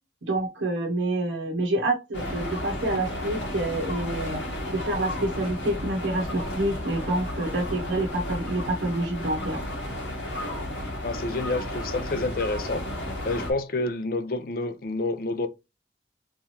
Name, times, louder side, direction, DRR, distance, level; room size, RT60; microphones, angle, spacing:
voice 1, 0.2-4.4 4.7-9.6, right 1 dB, 90° right, 0.8 m, -27 dB
sound 1, 2.1-13.5, left 1 dB, 90° left, 1.5 m, -33 dB
voice 2, 11.0-12.9 13.3-15.5, left 2 dB, 50° left, 0.4 m, -28 dB
3.5 x 3.0 x 2.8 m
head